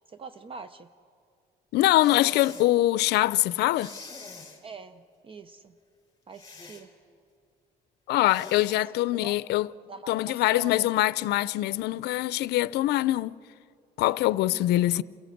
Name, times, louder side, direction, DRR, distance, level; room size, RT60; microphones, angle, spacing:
voice 1, 0.1-0.9 4.6-5.8 6.3-6.9 8.7-8.8 9.2-9.4 9.9-10.9 14.5-14.6, right 4 dB, 30° right, 0.7 m, -44 dB
voice 2, 1.7-3.9 8.1-9.7 10.1-13.4 14.0-15.0, left 16 dB, 80° left, 0.5 m, -23 dB
sound 1, 1.9-2.7 3.7-4.6 6.3-6.9 8.3-8.8, left 4 dB, 20° left, 4.1 m, -44 dB
29.0 x 17.0 x 7.9 m
cardioid pair, 110°, 17 cm